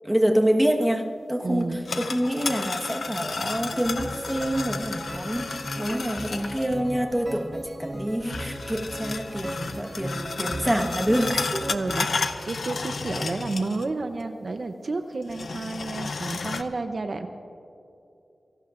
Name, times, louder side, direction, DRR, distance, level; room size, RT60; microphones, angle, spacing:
voice 1, 0.0-11.7 11.9-12.2, equal, 5° right, 2 dB, 1.3 m, -26 dB
voice 2, 1.4-1.8 11.7-17.3, right 3 dB, 55° right, 7 dB, 0.7 m, -31 dB
sound 1, 1.6-6.7 8.2-13.9 14.2-14.3 15.2-16.6, left 4 dB, 75° left, 0.7 m, -33 dB
sound 2, 3.5-12.1, right 1 dB, 25° right, 2.0 m, -37 dB
26.5 x 18.0 x 2.5 m, 2.8 s
wide cardioid pair, 95°, 0 cm